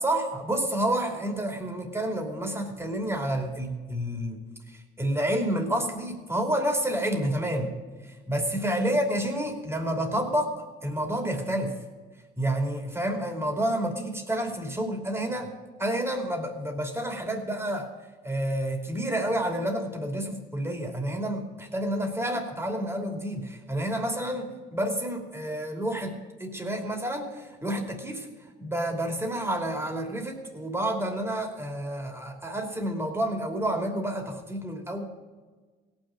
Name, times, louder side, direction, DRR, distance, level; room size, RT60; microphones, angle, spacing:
voice 1, 0.0-4.4 4.7-7.8 8.0-11.8 12.4-15.5 15.8-17.9 18.2-28.3 28.6-35.0, right 1 dB, 10° right, 3 dB, 2.8 m, -29 dB
17.0 x 6.4 x 8.4 m, 1.4 s
cardioid pair, 90°, 20 cm